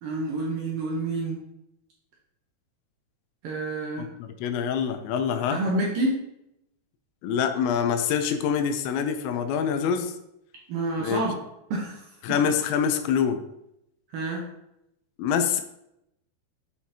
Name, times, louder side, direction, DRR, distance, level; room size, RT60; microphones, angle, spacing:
voice 1, 0.0-1.4 3.4-4.1 5.5-6.2 10.7-11.4 11.7-12.1 14.1-14.5, right 2 dB, 75° right, -2 dB, 2.1 m, -28 dB
voice 2, 4.2-5.6 7.2-10.1 11.0-11.2 12.2-13.4 15.2-15.6, left 7 dB, 90° left, 8 dB, 3.0 m, -25 dB
8.2 x 5.9 x 2.8 m, 0.82 s
omnidirectional pair, 5.1 m